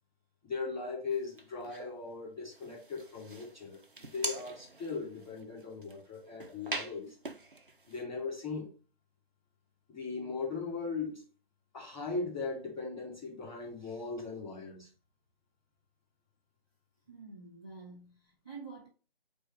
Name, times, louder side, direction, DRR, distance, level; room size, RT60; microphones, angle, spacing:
voice 1, 0.4-7.2 7.9-8.7 9.9-11.2 11.7-14.9, left 4 dB, 5° left, 2.4 m, -38 dB
sound 1, 1.1-2.0 2.5-8.0, right 3 dB, 55° right, 0.9 m, -43 dB
voice 2, 17.1-18.9, right 4 dB, 10° right, 1.0 m, -48 dB
7.9 x 2.7 x 4.4 m
figure-of-eight pair, 160°, 31 cm